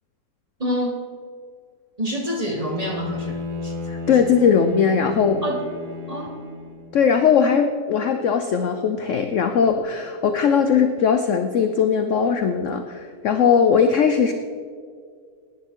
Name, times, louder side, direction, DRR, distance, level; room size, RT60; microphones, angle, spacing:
voice 1, 0.6-1.0 2.0-3.7 4.1-4.2 5.4-5.6 6.1-6.4, equal, 25° right, 1 dB, 1.2 m, -27 dB
Bowed string instrument, 2.5-7.0, left 3 dB, 60° right, 2.1 m, -33 dB
voice 2, 3.9-5.4 6.9-14.3, left 6 dB, 65° left, 7 dB, 0.7 m, -19 dB
18.5 x 9.7 x 3.7 m, 2.1 s
omnidirectional pair, 2.0 m